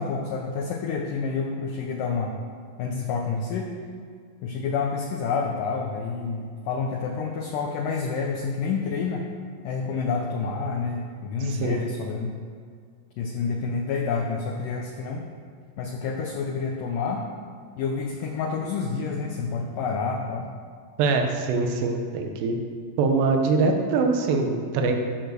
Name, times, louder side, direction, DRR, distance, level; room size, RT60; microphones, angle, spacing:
voice 1, 0.0-2.4 2.8-3.7 4.4-9.3 9.6-12.4 13.2-15.3 15.8-17.3 17.8-20.5, left 5 dB, 75° left, 1 dB, 2.0 m, -28 dB
voice 2, 11.5-11.9 21.0-22.6 23.0-24.9, right 4 dB, 85° right, 4 dB, 3.2 m, -23 dB
13.5 x 6.5 x 6.6 m, 2.1 s
omnidirectional pair, 4.8 m